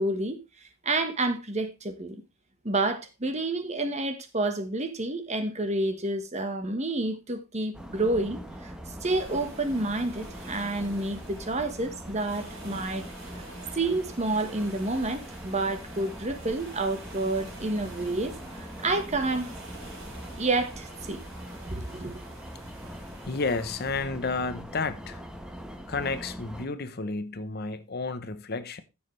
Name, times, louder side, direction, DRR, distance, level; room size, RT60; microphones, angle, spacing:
voice 1, 0.0-2.2 2.6-8.7 9.0-13.1 13.7-19.5 20.4-21.2 21.7-22.1, right 2 dB, 30° right, 1.3 m, -29 dB
sound 1, 7.7-26.7, equal, 5° right, 1.2 m, -42 dB
sound 2, 9.0-24.0, right 2 dB, 65° right, 5.3 m, -48 dB
voice 2, 23.3-25.2 25.9-28.8, left 3 dB, 45° left, 0.8 m, -31 dB
14.0 x 7.2 x 3.2 m
head